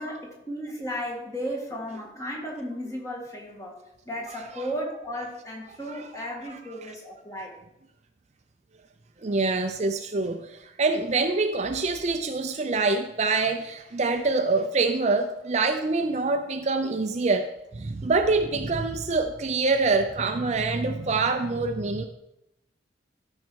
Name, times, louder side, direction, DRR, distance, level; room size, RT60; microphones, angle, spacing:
voice 1, 0.0-3.8 4.1-7.5, equal, 15° left, -1 dB, 1.9 m, -34 dB
voice 2, 9.2-22.1, right 3 dB, 35° right, 6 dB, 0.5 m, -25 dB
13.0 x 5.4 x 4.7 m, 0.87 s
head